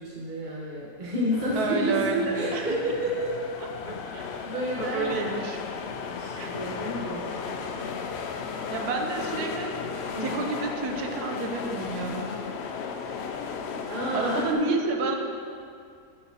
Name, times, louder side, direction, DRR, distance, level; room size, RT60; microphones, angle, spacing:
voice 1, 0.0-3.3 4.4-5.5 6.1-7.3 9.4-9.6 10.1-10.3 13.9-14.9, equal, 35° right, -6 dB, 1.1 m, -30 dB
sound 1, 1.3-14.5, left 5 dB, 65° left, 0.6 m, -35 dB
voice 2, 1.6-2.7 3.6-4.3 4.8-5.6 6.3-6.6 8.7-9.9 10.2-12.3 14.1-15.2, right 4 dB, 80° right, 3 dB, 1.3 m, -31 dB
12.5 x 5.5 x 2.9 m, 2.3 s
omnidirectional pair, 1.6 m